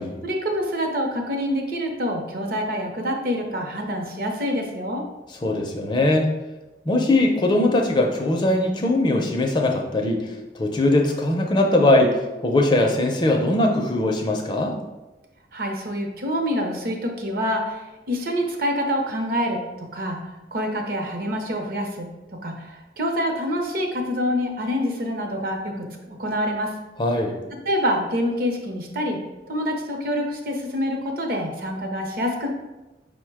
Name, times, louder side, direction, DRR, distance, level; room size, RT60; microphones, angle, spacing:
voice 1, 0.2-5.0 15.5-19.6 19.9-20.2 20.5-22.1 22.4-26.7 27.7-29.2 29.5-32.5, equal, 50° right, 2 dB, 0.6 m, -26 dB
voice 2, 5.4-6.3 6.9-14.7 27.0-27.3, left 1 dB, 25° left, 2 dB, 0.4 m, -20 dB
5.1 x 2.1 x 4.6 m, 1.1 s
head